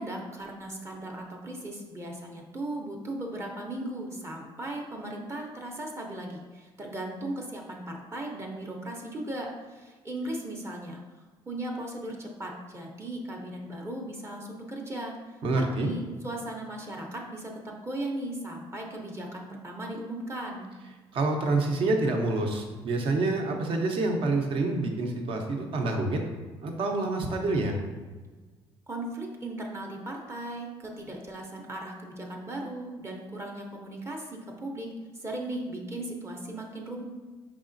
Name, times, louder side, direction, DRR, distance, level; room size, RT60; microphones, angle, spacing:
voice 1, 0.0-11.0 11.5-20.7 28.9-34.9 35.2-37.0, right 1 dB, 25° right, 0 dB, 0.7 m, -37 dB
voice 2, 15.4-15.9 21.1-26.2 26.6-27.8, right 2 dB, 60° right, 3 dB, 0.8 m, -27 dB
4.9 x 3.5 x 2.6 m, 1.3 s
cardioid pair, 100°, 10 cm